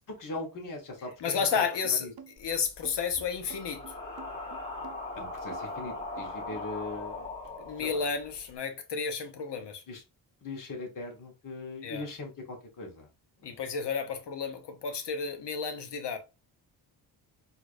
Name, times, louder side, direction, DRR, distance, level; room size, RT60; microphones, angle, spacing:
voice 1, 0.1-1.6 2.0-2.1 5.1-7.3 7.8-8.1 9.9-10.0 10.4-13.1 13.4-13.6, left 2 dB, 45° left, 1.4 m, -40 dB
voice 2, 1.2-2.1 2.4-3.8 7.6-9.8 11.8-12.0 13.4-16.2, left 6 dB, 60° left, 1.0 m, -32 dB
sound 1, 1.5-6.7, right 7 dB, 55° right, 0.7 m, -49 dB
sound 2, 2.4-8.5, left 2 dB, 10° left, 1.4 m, -40 dB
4.4 x 2.7 x 2.6 m
cardioid pair, 70°, 46 cm